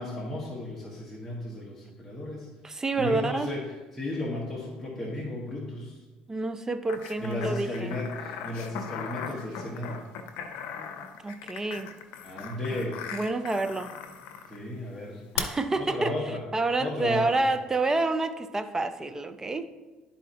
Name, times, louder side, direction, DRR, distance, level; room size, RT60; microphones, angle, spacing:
voice 1, 0.0-2.5 3.0-3.6 3.9-6.0 7.2-10.0 12.2-13.0 14.5-15.2 15.8-16.4 16.8-17.4, left 1 dB, 5° left, -5 dB, 1.2 m, -34 dB
voice 2, 2.6-3.5 6.3-8.0 11.2-11.9 13.1-13.9 15.3-19.7, right 2 dB, 20° right, 10 dB, 0.5 m, -28 dB
sound 1, 6.9-14.6 15.4-15.5, left 8 dB, 85° left, 0.6 m, -38 dB
11.0 x 4.2 x 2.8 m, 1.2 s
cardioid pair, 100°, 3 cm